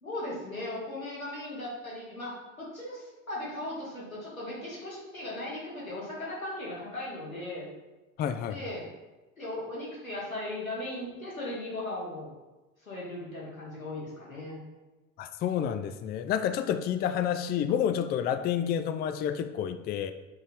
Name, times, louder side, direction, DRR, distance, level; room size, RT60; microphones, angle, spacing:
voice 1, 0.0-7.7 8.4-8.9 9.4-12.3 12.9-14.6, left 1 dB, 85° left, -6 dB, 2.2 m, -37 dB
voice 2, 8.2-8.6 15.2-20.1, left 9 dB, 25° left, 10 dB, 0.4 m, -29 dB
5.7 x 5.6 x 4.5 m, 1.1 s
figure-of-eight pair, 65°, 40 cm